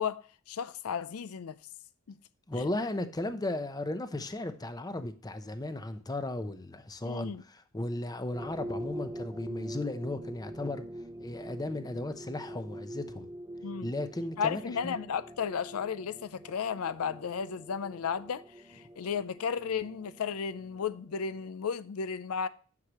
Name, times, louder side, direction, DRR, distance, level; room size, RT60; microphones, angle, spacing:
voice 1, 0.0-1.6 2.1-2.2 2.5-2.7 7.1-7.4 13.6-13.9 14.4-18.4 18.7-22.5, left 6 dB, 90° left, 0.5 m, -34 dB
voice 2, 2.5-10.8 11.2-13.2 13.8-14.9, left 2 dB, 20° left, 0.7 m, -35 dB
sound 1, 8.3-21.5, right 1 dB, 15° right, 0.7 m, -44 dB
9.6 x 6.5 x 3.0 m
head